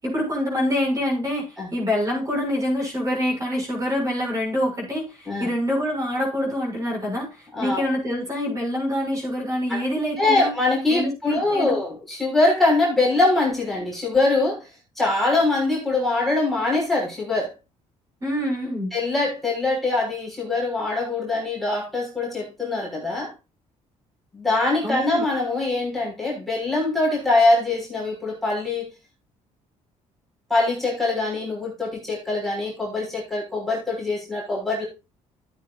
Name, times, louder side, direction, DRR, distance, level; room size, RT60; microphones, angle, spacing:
voice 1, 0.0-10.5 10.9-11.8 18.2-18.9 24.8-25.2, left 1 dB, 25° right, 6.8 m, -26 dB
voice 2, 7.5-7.8 9.7-9.8 10.2-14.7 15.0-17.5 18.9-23.3 24.3-28.9 30.5-34.8, left 2 dB, ahead, 5.9 m, -23 dB
14.5 x 8.9 x 2.5 m
cardioid pair, 125°, 12 cm